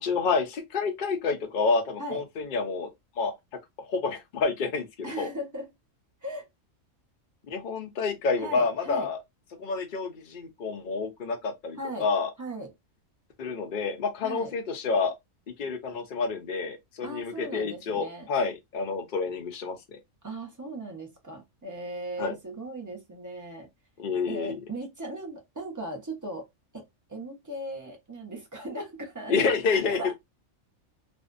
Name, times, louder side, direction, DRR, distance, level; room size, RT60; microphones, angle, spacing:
voice 1, 0.0-2.9 3.2-3.3 3.8-5.3 7.5-9.2 9.6-12.3 13.4-15.1 15.6-20.0 22.2-22.3 24.0-24.6 29.3-30.1, left 4 dB, 50° left, 0.7 m, -29 dB
voice 2, 5.0-5.7 6.2-6.5 8.4-9.1 11.8-12.1 12.4-12.7 14.2-14.5 17.0-18.3 20.2-23.7 24.3-26.5 26.7-26.8 27.1-30.1, right 1 dB, 20° right, 0.5 m, -37 dB
2.6 x 2.1 x 2.5 m
omnidirectional pair, 1.4 m